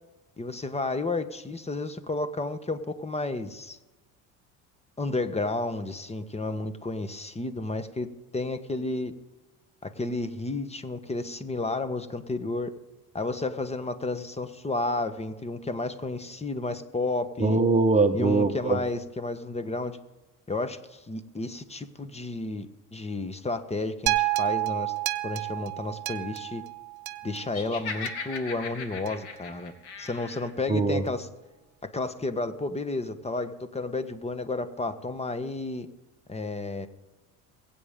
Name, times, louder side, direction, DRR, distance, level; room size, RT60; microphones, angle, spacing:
voice 1, 0.4-3.8 5.0-8.1 8.3-9.1 9.8-12.7 13.1-17.6 18.1-20.0 20.5-22.7 22.9-24.9 25.2-26.6 27.2-29.7 30.0-31.3 31.8-35.9 36.3-36.9, left 2 dB, 15° left, 11 dB, 1.2 m, -32 dB
voice 2, 17.4-18.8 30.7-31.0, right 3 dB, 15° right, 6 dB, 1.2 m, -22 dB
sound 1, 24.1-28.4 29.1-29.2, right 20 dB, 55° right, 0.9 m, -30 dB
Laughter, 27.5-30.5, left 5 dB, 60° left, 2.4 m, -38 dB
22.5 x 8.7 x 3.7 m, 1.1 s
hypercardioid pair, 75°, 45 cm